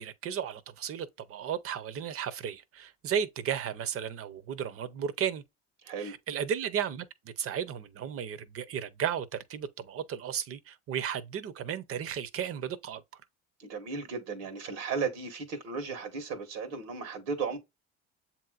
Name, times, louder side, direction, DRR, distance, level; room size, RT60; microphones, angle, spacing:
voice 1, 0.0-5.4 6.0-13.0, right 8 dB, 50° right, 0.8 m, -34 dB
voice 2, 5.8-6.1 13.6-17.6, right 5 dB, 90° right, 1.5 m, -35 dB
7.3 x 2.9 x 2.4 m
supercardioid pair, 90°, 29 cm